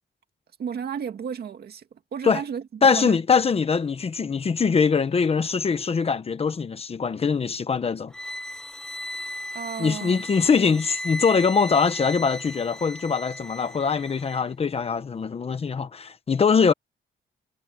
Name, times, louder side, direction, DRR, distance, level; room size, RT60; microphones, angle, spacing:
voice 1, 0.6-1.9 2.1-2.6 2.9-3.2 9.5-10.2, right 7 dB, 55° right, 2.0 m, -33 dB
voice 2, 2.8-8.1 9.8-16.7, left 5 dB, 30° left, 1.0 m, -22 dB
sound 1, 8.1-14.5, left 1 dB, 5° left, 1.1 m, -36 dB
wide cardioid pair, 170°, 19 cm